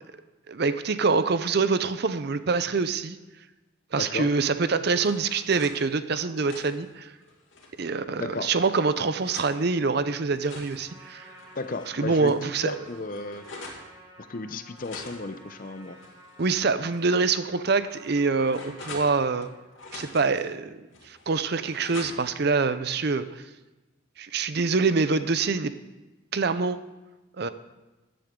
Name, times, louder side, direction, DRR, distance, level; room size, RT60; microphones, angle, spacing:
voice 1, 0.5-3.2 3.9-7.1 7.8-11.3 11.9-12.7 16.4-19.5 19.9-20.8 21.0-23.4 24.2-25.7 26.3-26.8 27.4-27.5, right 4 dB, 50° right, 12 dB, 0.5 m, -25 dB
voice 2, 4.0-4.3 8.2-8.5 11.6-13.4 14.2-16.0, left 3 dB, 40° left, 11 dB, 0.6 m, -34 dB
sound 1, 4.5-5.8 6.2-7.9 8.4-9.6 10.1-11.9 12.2-12.3 12.6-13.9 14.7-16.6 16.9-17.0 17.7-19.5 19.8-20.4 20.9-22.4, left 3 dB, 70° left, 2.4 m, -45 dB
Trumpet, 10.7-19.7, right 1 dB, 20° right, 2.9 m, -52 dB
14.5 x 10.5 x 3.7 m, 1.1 s
head